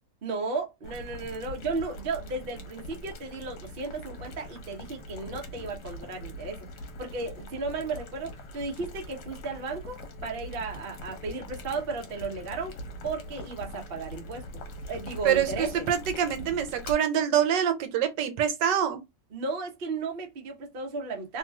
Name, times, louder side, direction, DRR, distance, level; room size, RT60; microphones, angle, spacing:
voice 1, 0.2-6.7 7.0-12.8 13.0-14.5 14.9-15.9 19.3-21.4, right 3 dB, 50° right, 0.7 m, -34 dB
Boiling, 0.8-16.9, left 1 dB, 75° left, 1.4 m, -42 dB
voice 2, 15.2-19.0, right 9 dB, 80° right, 1.2 m, -25 dB
3.1 x 2.9 x 2.2 m
omnidirectional pair, 2.0 m